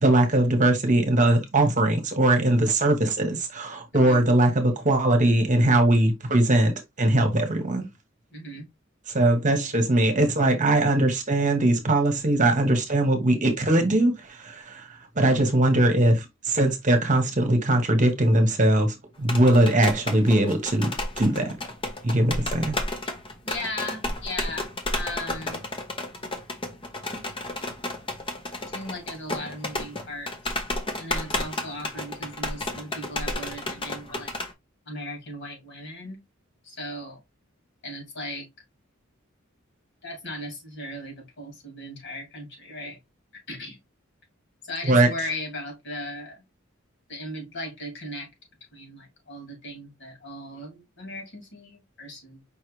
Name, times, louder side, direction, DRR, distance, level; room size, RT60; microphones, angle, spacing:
voice 1, 0.0-7.8 9.1-14.9 15.2-20.9 21.2-21.5 22.0-22.8 44.8-45.1, right 1 dB, 40° right, 1.1 m, -21 dB
voice 2, 3.9-4.2 8.3-8.6 23.4-25.7 28.7-30.3 31.0-34.3 34.9-36.2 36.6-37.2 37.8-38.5 40.0-43.0 43.3-43.8 44.6-46.4 47.1-48.3 48.7-52.4, left 1 dB, 60° left, 2.6 m, -37 dB
sound 1, 19.2-34.5, left 2 dB, 25° left, 1.0 m, -32 dB
5.4 x 3.2 x 3.1 m
head